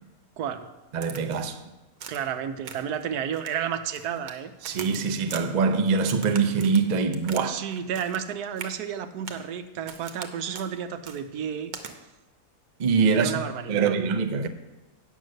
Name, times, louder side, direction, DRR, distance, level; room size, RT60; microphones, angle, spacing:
voice 1, 0.9-1.6 4.6-7.6 12.8-13.3 13.7-14.5, right 5 dB, 55° right, 0.5 m, -24 dB
Crack, 1.0-1.6 2.0-2.3 2.7-3.0 3.3-4.4 4.6-5.4 6.0-7.5 7.7-8.3 8.6-8.8 9.3-9.5 9.9-10.3 10.5-10.7 11.1-11.2 11.7-11.9, right 6 dB, 70° right, 1.3 m, -41 dB
voice 2, 2.1-4.5 7.4-11.7 13.1-14.0, right 8 dB, 90° right, 1.2 m, -32 dB
9.3 x 6.1 x 6.4 m
omnidirectional pair, 1.6 m